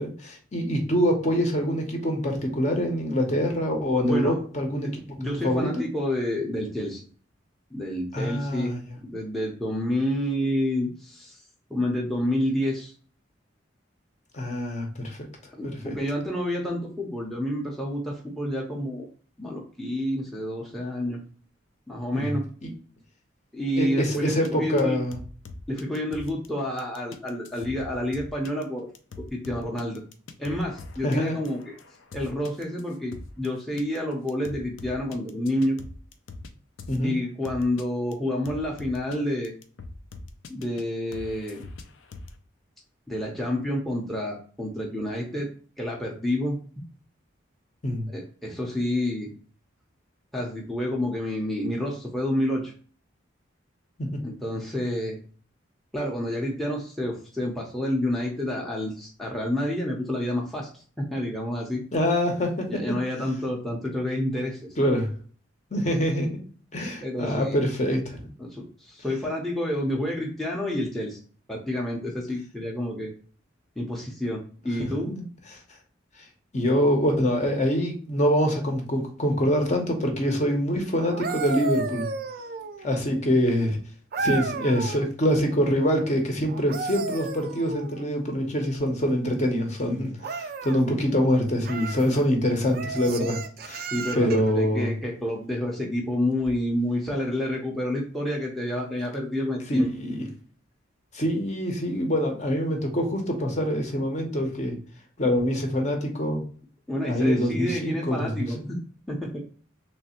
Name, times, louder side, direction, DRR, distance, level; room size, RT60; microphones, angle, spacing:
voice 1, 0.0-4.9 5.4-5.8 8.1-9.0 14.3-15.2 15.6-16.0 22.1-22.7 23.8-25.2 31.0-31.4 36.9-37.1 47.8-48.1 54.0-54.2 61.9-62.7 64.8-65.1 65.7-66.3 66.7-68.3 74.8-75.2 76.5-82.1 82.8-83.8 84.2-93.9 94.1-94.9 99.7-100.3 101.1-104.8 105.2-106.4 107.0-108.5, equal, 35° left, 2 dB, 0.7 m, -25 dB
voice 2, 4.0-4.4 4.7-4.9 5.2-7.0 7.7-8.7 9.1-11.4 11.7-12.9 15.6-19.1 19.4-21.2 21.9-22.4 23.5-25.0 25.7-28.9 29.3-30.0 30.4-31.7 32.1-35.8 37.0-39.5 40.5-41.6 43.1-45.5 45.8-46.6 48.1-49.3 50.3-52.7 54.2-55.2 55.9-61.8 62.7-64.6 67.0-67.6 68.4-71.2 71.5-73.1 73.8-75.1 93.9-99.9 106.9-108.8 109.1-109.4, left 1 dB, ahead, -2 dB, 0.6 m, -29 dB
sound 1, 24.1-24.5 24.8-24.9 25.1-26.5 26.8-33.5 33.8-34.0 34.3-36.5 36.8-37.0 37.4-37.8 38.1-38.2 38.4-39.2 39.4-40.8 41.1-42.3, left 3 dB, 85° left, 0.5 m, -42 dB
sound 2, 81.0-83.0 84.1-85.1 86.5-88.1 90.2-90.8 91.6-92.1 92.7-94.5 96.4-96.6, right 4 dB, 50° right, 0.3 m, -33 dB
3.2 x 3.2 x 2.9 m, 0.43 s
head